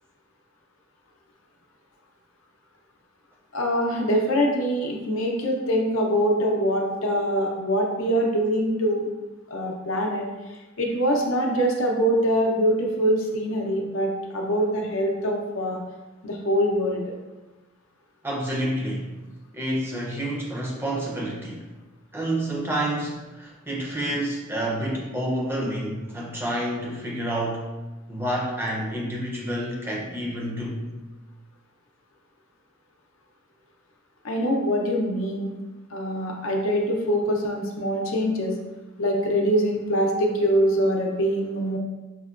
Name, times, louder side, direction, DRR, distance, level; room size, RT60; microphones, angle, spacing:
voice 1, 3.5-9.0 9.5-10.2 10.8-15.8 16.2-17.0 34.2-35.5 35.9-38.5 39.0-41.8, equal, 75° left, 1 dB, 0.6 m, -24 dB
voice 2, 18.2-19.1 19.5-21.7 22.1-27.7 28.1-30.8, right 1 dB, 10° right, -3 dB, 0.5 m, -29 dB
5.5 x 2.1 x 2.4 m, 1.1 s
head